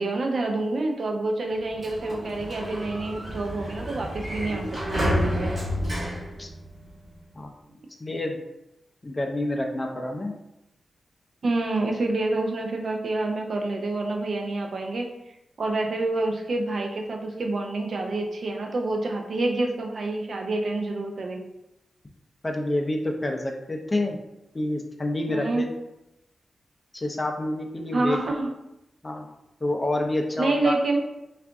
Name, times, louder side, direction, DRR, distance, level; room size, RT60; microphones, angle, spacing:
voice 1, 0.0-5.6 11.4-15.1 15.6-21.4 25.3-25.6 27.9-28.5 30.4-31.0, right 2 dB, 60° right, 2 dB, 0.5 m, -27 dB
Sliding door, 1.5-7.2, equal, 40° right, 1.2 m, -30 dB
voice 2, 8.0-8.4 9.0-10.3 22.4-24.2 24.5-25.6 26.9-28.2 29.0-29.2 29.6-30.7, left 1 dB, 20° left, 2 dB, 0.4 m, -28 dB
3.7 x 2.4 x 3.4 m, 0.90 s
wide cardioid pair, 135°, 0 cm